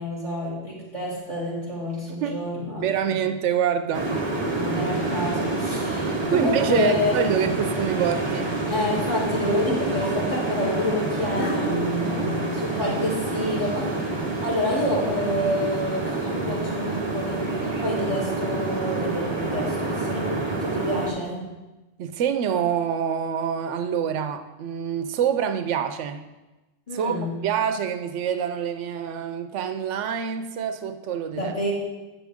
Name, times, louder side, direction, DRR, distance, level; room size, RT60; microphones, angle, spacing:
voice 1, 0.0-2.8 4.5-7.2 8.7-11.8 12.5-14.0 14.4-21.5 26.9-27.4 31.3-31.7, left 1 dB, 30° left, -6 dB, 2.6 m, -28 dB
voice 2, 2.8-4.1 6.3-8.5 12.0-12.4 22.0-26.2 26.9-27.1 27.4-31.5, right 8 dB, 85° right, 8 dB, 0.9 m, -26 dB
sound 1, 3.9-21.1, right 2 dB, 25° right, 1.0 m, -27 dB
sound 2, 7.8-7.9 8.6-9.1 11.4-13.3, left 1 dB, 70° left, 1.3 m, -32 dB
8.7 x 6.2 x 3.5 m, 1.1 s
omnidirectional pair, 1.2 m